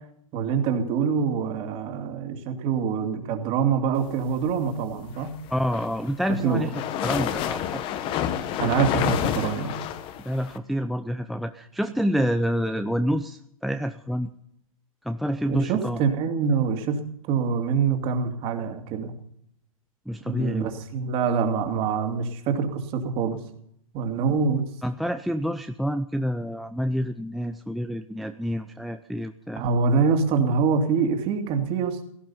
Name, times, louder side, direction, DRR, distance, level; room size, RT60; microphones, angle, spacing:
voice 1, 0.3-5.4 6.4-6.8 8.6-9.7 15.5-17.0 17.3-19.1 20.2-23.4 23.9-24.6 29.6-32.0, right 5 dB, 30° right, 6 dB, 2.6 m, -25 dB
sound 1, 5.5-10.6, left 10 dB, 30° left, 1.4 m, -29 dB
voice 2, 5.5-6.7 7.0-7.8 10.2-14.3 15.0-16.0 20.1-20.7 24.8-29.6, equal, ahead, 7 dB, 0.5 m, -28 dB
17.0 x 14.0 x 5.6 m, 0.69 s
hypercardioid pair, 135°, 18 cm